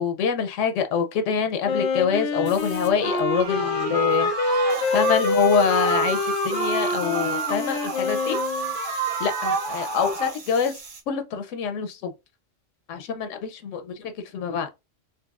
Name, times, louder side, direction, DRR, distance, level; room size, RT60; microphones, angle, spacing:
voice 1, 0.0-8.4 8.8-10.8 11.1-12.1 12.9-14.7, left 6 dB, 85° left, 0.9 m, -26 dB
Wind instrument woodwind instrument, 1.6-8.8, left 3 dB, 60° left, 0.6 m, -26 dB
sound 1, 2.4-3.7 3.9-11.0, right 5 dB, 55° right, 0.3 m, -43 dB
sound 2, 3.0-10.4, right 5 dB, 90° right, 1.5 m, -30 dB
3.9 x 2.8 x 2.3 m
omnidirectional pair, 1.2 m